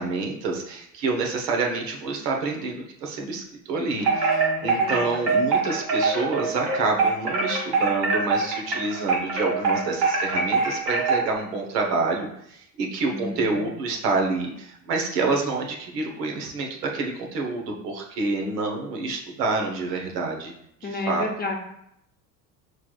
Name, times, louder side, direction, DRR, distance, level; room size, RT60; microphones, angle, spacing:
voice 1, 0.0-20.5 20.8-21.2, right 3 dB, 75° right, 1 dB, 1.0 m, -28 dB
voice 2, 3.8-5.1 13.1-13.7 20.8-21.6, left 2 dB, 20° left, 1 dB, 0.7 m, -32 dB
Wind chime, 4.0-11.4, right 4 dB, 55° right, 1.5 m, -23 dB
5.6 x 3.2 x 2.3 m, 0.75 s
hypercardioid pair, 65°, 49 cm